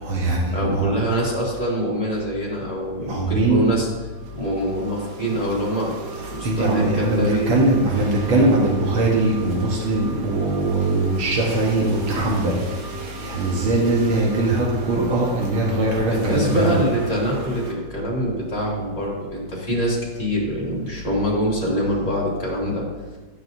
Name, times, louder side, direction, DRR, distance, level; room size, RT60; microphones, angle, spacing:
voice 1, 0.0-0.9 3.1-3.6 6.4-12.6 13.2-16.8, right 2 dB, 85° right, -3 dB, 2.0 m, -21 dB
voice 2, 0.5-3.9 4.3-5.9 6.3-7.6 16.1-22.8, equal, 20° left, -6 dB, 2.6 m, -24 dB
sound 1, 4.0-17.7, right 3 dB, 65° right, 1.7 m, -37 dB
12.5 x 6.4 x 2.7 m, 1.2 s
omnidirectional pair, 2.1 m